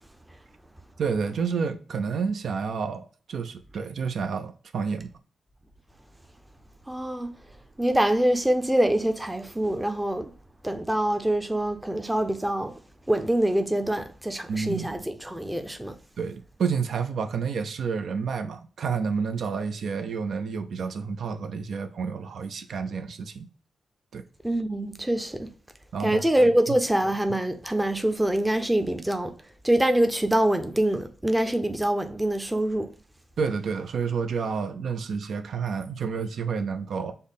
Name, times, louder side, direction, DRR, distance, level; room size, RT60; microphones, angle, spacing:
voice 1, 1.0-5.1 14.5-14.9 16.2-23.5 24.1-24.3 25.9-26.2 33.4-37.1, right 5 dB, 70° right, 0.5 m, -29 dB
voice 2, 6.9-7.4 7.8-10.3 10.6-12.8 13.1-16.0 24.4-25.5 26.0-29.3 29.6-32.9, right 1 dB, 10° right, 0.5 m, -25 dB
5.3 x 2.1 x 4.0 m
wide cardioid pair, 115°, 0 cm